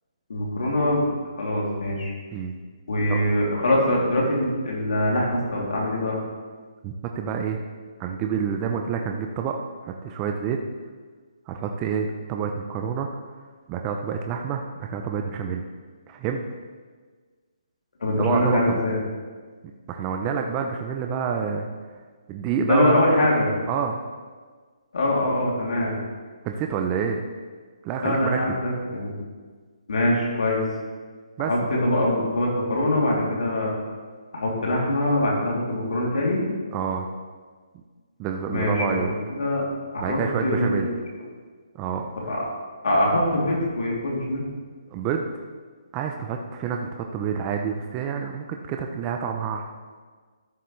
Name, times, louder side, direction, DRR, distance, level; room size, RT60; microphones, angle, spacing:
voice 1, 0.3-1.1 1.4-2.1 2.9-6.2 18.0-18.9 22.7-23.5 24.9-26.0 28.0-29.1 29.9-30.6 31.4-33.7 34.3-36.4 38.5-39.6 39.9-40.9 42.3-42.4 42.8-44.4, left 1 dB, 75° left, -4 dB, 2.9 m, -23 dB
voice 2, 6.8-7.6 8.0-9.6 9.8-10.6 11.5-13.1 13.7-15.6 16.1-16.4 18.2-18.8 19.9-21.7 22.3-23.0 23.7-24.0 26.4-27.2 27.8-28.6 31.4-31.7 36.7-37.1 38.2-39.1 40.0-40.9 41.7-42.1 44.9-45.3 45.9-49.7, right 7 dB, 20° right, 3 dB, 0.5 m, -28 dB
13.0 x 6.8 x 3.2 m, 1.5 s
hypercardioid pair, 160°, 4 cm